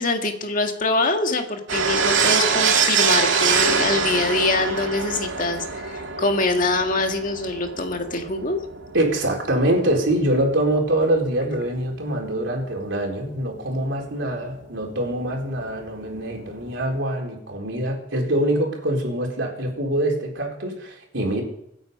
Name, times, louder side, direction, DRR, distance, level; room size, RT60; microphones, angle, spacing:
voice 1, 0.0-8.6, left 3 dB, 45° left, 4 dB, 1.9 m, -24 dB
sound 1, 1.7-11.4 11.7-11.8 12.0-12.1 14.6-14.7 14.9-15.0 15.2-17.0, right 5 dB, 85° right, 2.2 m, -24 dB
voice 2, 8.9-21.4, right 1 dB, 70° right, 1 dB, 4.1 m, -24 dB
25.5 x 9.0 x 5.4 m, 0.78 s
head